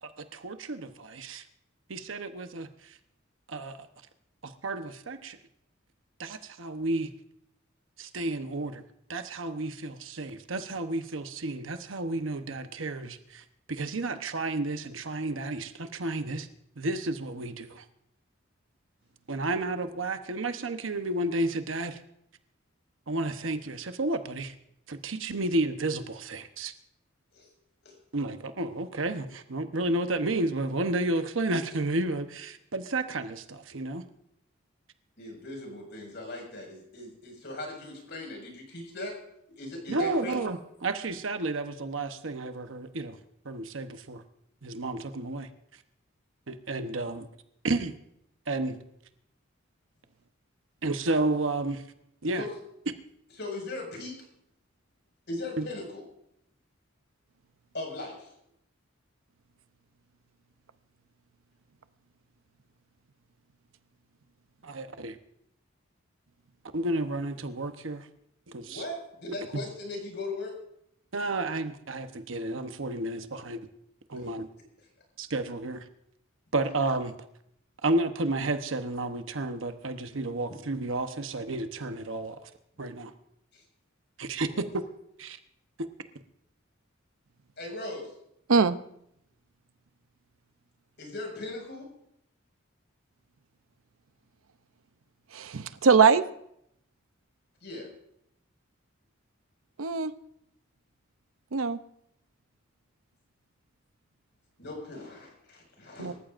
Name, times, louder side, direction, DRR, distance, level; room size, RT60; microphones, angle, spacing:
voice 1, 0.0-1.4 1.9-2.7 3.5-3.8 4.4-5.4 6.2-7.1 8.0-8.8 9.1-16.5 16.8-17.8 19.3-22.0 23.1-24.5 24.9-26.7 28.1-34.0 39.9-43.2 43.4-44.2 44.6-45.5 46.5-47.3 47.6-47.9 48.5-48.8 50.8-51.8 52.2-52.4 55.6-55.7 64.6-65.2 66.7-68.1 68.5-68.8 71.1-73.6 74.1-74.5 75.2-75.8 76.5-77.1 77.8-82.5 82.8-83.1 84.2-84.8 85.2-85.4, right 2 dB, 70° right, 1.0 m, -31 dB
voice 2, 35.2-39.2 39.5-40.4 52.4-52.5 53.4-54.3 55.3-56.0 57.7-58.3 68.7-70.6 83.5-83.6 84.5-84.6 87.6-88.1 91.0-91.9 97.6-97.9 104.6-106.1, left 2 dB, 55° left, 5.7 m, -38 dB
voice 3, 95.3-96.3 99.8-100.1 101.5-101.8 106.0-106.1, right 5 dB, 90° right, 0.6 m, -22 dB
26.0 x 14.0 x 2.6 m
head